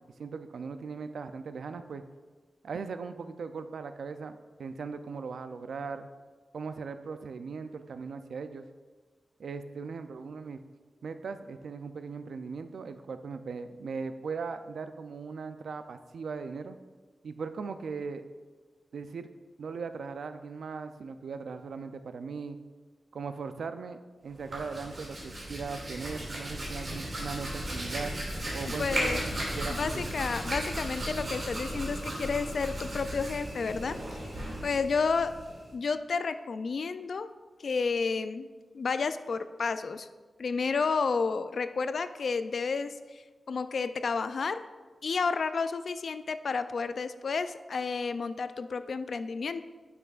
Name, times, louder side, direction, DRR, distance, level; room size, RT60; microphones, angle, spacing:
voice 1, 0.2-2.0 2.6-4.3 4.6-6.1 6.5-8.6 9.4-10.6 11.0-16.8 17.2-18.3 18.9-19.3 19.6-22.6 23.1-28.2 28.5-30.0, right 5 dB, 85° right, 9 dB, 0.4 m, -39 dB
Hands, 24.3-35.7, right 1 dB, 40° right, 2.4 m, -36 dB
voice 2, 28.8-29.2 29.7-34.3 34.6-35.4 35.7-37.3 37.6-40.1 40.4-44.7 45.0-49.6, left 4 dB, 60° left, 12 dB, 0.3 m, -31 dB
10.0 x 6.9 x 2.4 m, 1.4 s
wide cardioid pair, 160°, 0 cm